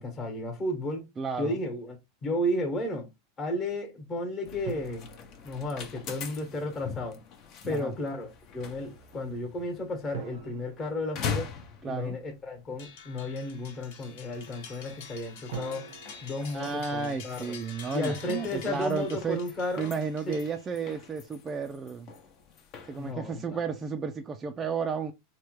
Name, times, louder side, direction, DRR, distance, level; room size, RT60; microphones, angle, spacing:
voice 1, 0.0-1.1 1.4-3.1 3.4-5.1 5.4-7.2 7.6-11.5 11.8-15.9 16.2-17.5 17.9-19.9 20.3-20.4 23.0-23.6, left 1 dB, 30° left, 1.1 m, -33 dB
voice 2, 1.2-1.6 7.6-7.9 11.8-12.2 16.5-19.4 19.8-22.1 22.9-25.1, right 5 dB, 25° right, 0.3 m, -32 dB
sound 1, 4.4-23.1, left 6 dB, 45° left, 0.7 m, -43 dB
sound 2, 4.6-6.3 10.1-12.0 15.5-17.8, right 7 dB, 75° right, 0.6 m, -45 dB
sound 3, 12.8-21.0, left 5 dB, 70° left, 1.0 m, -48 dB
3.2 x 2.2 x 3.0 m
supercardioid pair, 120°, 0 cm